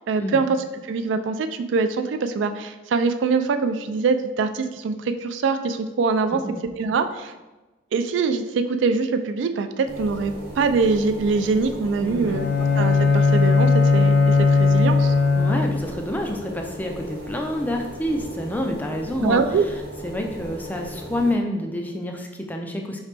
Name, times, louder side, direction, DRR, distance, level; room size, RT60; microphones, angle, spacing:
voice 1, 0.1-0.5 0.8-6.4 6.8-7.3 7.9-12.5 12.8-15.1 19.2-19.6, right 4 dB, 75° right, 9 dB, 0.3 m, -23 dB
sound 1, 9.9-21.3, equal, 55° right, 1.1 m, -37 dB
voice 2, 12.0-12.4 15.4-23.0, left 1 dB, 10° left, 2 dB, 0.3 m, -28 dB
Bowed string instrument, 12.3-16.0, left 4 dB, 80° left, 0.4 m, -18 dB
4.8 x 3.2 x 3.3 m, 1.1 s
head